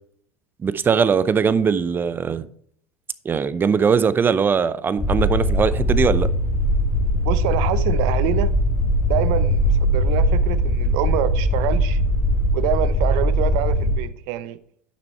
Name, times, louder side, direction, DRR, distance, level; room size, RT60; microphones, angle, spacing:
voice 1, 0.6-2.5 3.2-6.3, right 6 dB, 25° right, 0.6 m, -20 dB
sound 1, 5.0-14.0, equal, 20° left, 1.8 m, -20 dB
voice 2, 7.2-8.5 9.1-12.0 12.5-14.6, right 13 dB, 60° right, 0.7 m, -26 dB
9.9 x 6.0 x 4.4 m
hypercardioid pair, 75°, 8 cm